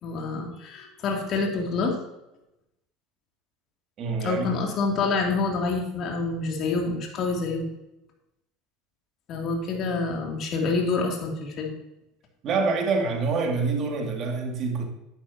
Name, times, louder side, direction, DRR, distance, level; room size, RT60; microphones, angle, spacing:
voice 1, 0.0-2.0 4.2-7.7 9.3-11.7, left 4 dB, 50° left, 2.8 m, -27 dB
voice 2, 4.0-4.6 12.4-14.9, right 4 dB, 45° right, 2.5 m, -26 dB
10.5 x 9.9 x 2.9 m
hypercardioid pair, 85°, 0 cm